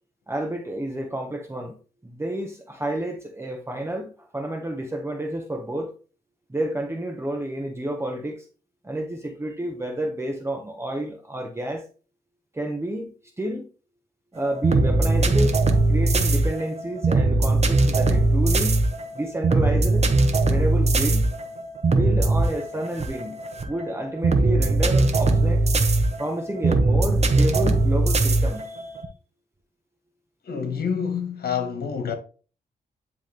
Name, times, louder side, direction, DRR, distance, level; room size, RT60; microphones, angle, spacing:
voice 1, 0.3-1.7 2.0-5.9 6.5-8.4 8.8-11.8 12.5-13.1 13.4-13.6 14.3-15.6 15.9-18.8 19.1-20.1 20.5-21.3 21.9-23.4 23.6-25.7 26.2-29.0, right 1 dB, 15° right, 1.2 m, -30 dB
sound 1, 14.4-29.1, right 2 dB, 40° right, 1.1 m, -20 dB
voice 2, 30.4-32.1, left 7 dB, 70° left, 1.6 m, -27 dB
10.5 x 3.6 x 3.5 m
cardioid pair, 105°, 17 cm